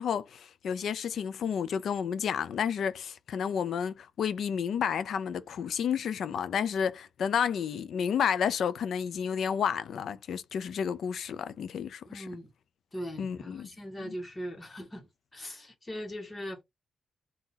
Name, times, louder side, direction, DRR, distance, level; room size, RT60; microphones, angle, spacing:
voice 1, 0.0-12.3 13.2-13.7 14.0-14.2, left 7 dB, 70° left, 0.5 m, -31 dB
voice 2, 12.1-12.5 12.9-15.0 15.3-16.6, equal, 20° left, 1.7 m, -40 dB
3.9 x 2.9 x 4.0 m
cardioid pair, 120°, 0 cm